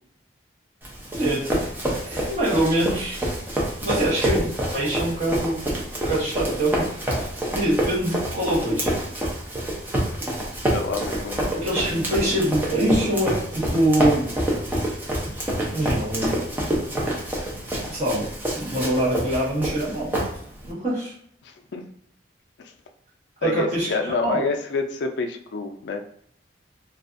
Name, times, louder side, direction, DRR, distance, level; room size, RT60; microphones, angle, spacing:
Run, 0.8-20.7, right 1 dB, 10° right, 0.5 m, -27 dB
voice 1, 1.1-1.5 2.0-3.2 3.8-5.6 6.0-9.0 11.6-14.3 15.7-16.4 17.9-18.3 18.5-20.1 20.6-21.1 23.4-24.4, right 1 dB, 40° right, -8 dB, 1.0 m, -24 dB
voice 2, 10.3-11.6 21.4-21.8 23.4-26.0, left 4 dB, 70° left, 5 dB, 0.4 m, -28 dB
2.5 x 2.3 x 2.4 m, 0.67 s
head